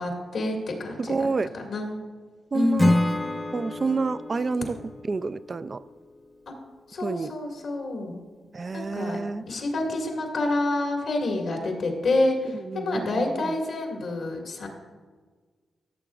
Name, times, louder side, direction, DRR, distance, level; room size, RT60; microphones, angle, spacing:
voice 1, 0.0-1.3 1.6-2.0 2.5-2.9 6.9-8.2 8.7-9.2 9.5-14.7, left 2 dB, 75° left, 1 dB, 1.9 m, -28 dB
voice 2, 1.0-1.5 2.5-3.0 3.5-5.8 7.0-7.3 8.5-9.5 12.5-13.6, right 4 dB, 45° right, 14 dB, 0.3 m, -29 dB
Acoustic guitar / Strum, 2.8-6.0, left 1 dB, 25° left, 0.8 m, -27 dB
14.5 x 6.8 x 2.4 m, 1.5 s
cardioid pair, 60°, 0 cm